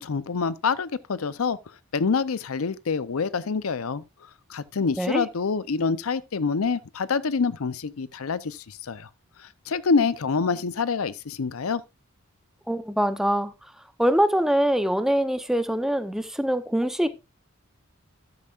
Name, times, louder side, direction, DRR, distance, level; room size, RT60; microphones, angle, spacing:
voice 1, 0.0-1.6 1.9-4.0 4.5-9.1 9.7-11.8, left 5 dB, 85° left, 0.6 m, -26 dB
voice 2, 12.7-13.5 14.0-17.1, equal, ahead, 0.7 m, -23 dB
13.0 x 8.2 x 2.4 m
head